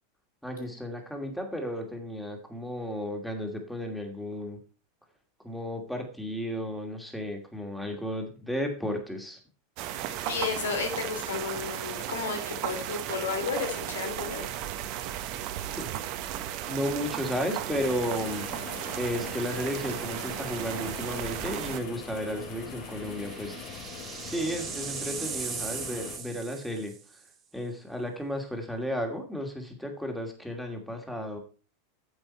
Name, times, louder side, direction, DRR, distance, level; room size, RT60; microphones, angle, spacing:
voice 1, 0.4-4.6 5.4-9.4 15.8-15.9 16.7-18.5 19.0-23.6 24.2-26.9 27.5-31.4, equal, ahead, 3 dB, 2.6 m, -33 dB
sound 1, 9.8-21.8, right 12 dB, 50° right, 1.2 m, -35 dB
voice 2, 9.9-14.4, left 5 dB, 80° left, 5 dB, 2.9 m, -33 dB
sound 2, 17.7-26.2, left 5 dB, 50° left, 3.3 m, -42 dB
sound 3, 20.3-20.6 21.0-21.1 22.5-27.2, right 6 dB, 30° right, 2.1 m, -39 dB
9.0 x 7.8 x 4.4 m, 0.37 s
hypercardioid pair, 100°, 0 cm